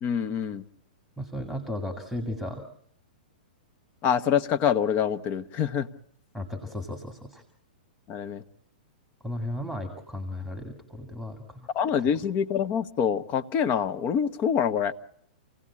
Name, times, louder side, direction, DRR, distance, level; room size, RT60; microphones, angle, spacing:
voice 1, 0.0-0.6 4.0-5.9 8.1-8.4 11.7-14.9, left 8 dB, 35° left, 12 dB, 1.0 m, -26 dB
voice 2, 1.2-2.6 6.3-7.4 9.2-11.7, left 1 dB, 5° left, 6 dB, 2.4 m, -35 dB
27.5 x 17.0 x 8.6 m, 0.70 s
hypercardioid pair, 115°, 5 cm